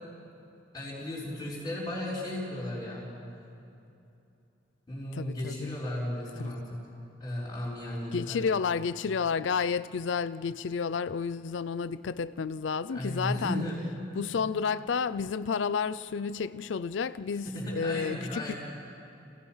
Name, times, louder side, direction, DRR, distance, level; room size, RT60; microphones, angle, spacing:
voice 1, 0.7-3.1 4.9-6.6 7.2-8.5 12.9-13.8 17.4-18.6, left 1 dB, 20° left, 3.9 m, -35 dB
voice 2, 5.1-5.8 6.4-6.5 8.1-13.6 14.1-18.5, left 5 dB, 90° left, 0.4 m, -31 dB
29.5 x 16.5 x 5.7 m
head